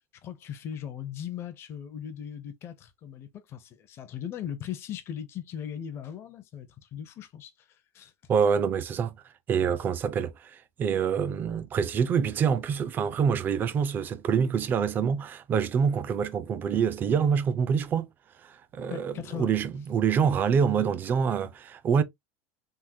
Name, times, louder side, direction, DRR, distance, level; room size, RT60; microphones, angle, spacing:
voice 1, 0.2-8.1 18.9-19.5, left 9 dB, 30° left, 0.5 m, -38 dB
voice 2, 8.3-9.2 9.5-18.1 18.4-22.0, right 7 dB, 20° right, 0.3 m, -26 dB
3.5 x 2.1 x 2.6 m
supercardioid pair, 170°, 9 cm